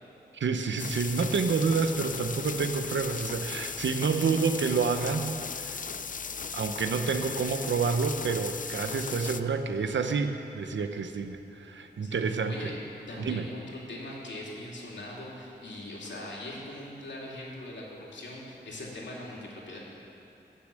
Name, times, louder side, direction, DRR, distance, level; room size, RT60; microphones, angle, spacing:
voice 1, 0.3-5.8 6.5-12.7 13.2-13.5, right 5 dB, 80° right, 7 dB, 0.9 m, -29 dB
sound 1, 0.8-9.4, left 6 dB, 45° left, 0.5 m, -37 dB
voice 2, 12.0-12.7 13.1-19.8, left 1 dB, 75° left, -4 dB, 3.0 m, -41 dB
18.0 x 6.9 x 7.6 m, 2.9 s
wide cardioid pair, 105°, 19 cm